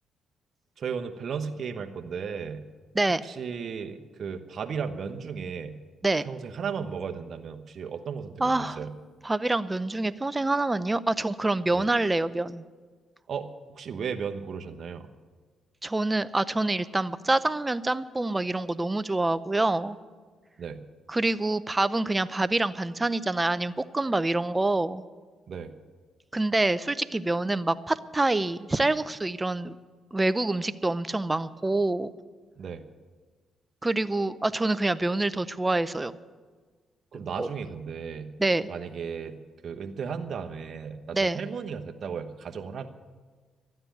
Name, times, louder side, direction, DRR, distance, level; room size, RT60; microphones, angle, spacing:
voice 1, 0.8-2.6 3.2-5.7 6.2-8.9 11.7-11.9 13.3-13.5 13.7-15.1 20.6-20.8 25.5-25.7 32.6-32.8 37.1-38.3 38.7-39.4 39.6-42.9, right 6 dB, 60° right, 5 dB, 1.1 m, -35 dB
voice 2, 8.4-8.8 9.2-12.6 15.8-20.0 21.1-25.0 26.3-29.8 30.1-32.1 33.8-36.1 37.4-37.5 38.4-38.7 41.1-41.4, right 2 dB, 20° right, 14 dB, 0.6 m, -26 dB
13.0 x 9.6 x 9.2 m, 1.5 s
cardioid pair, 70°, 0 cm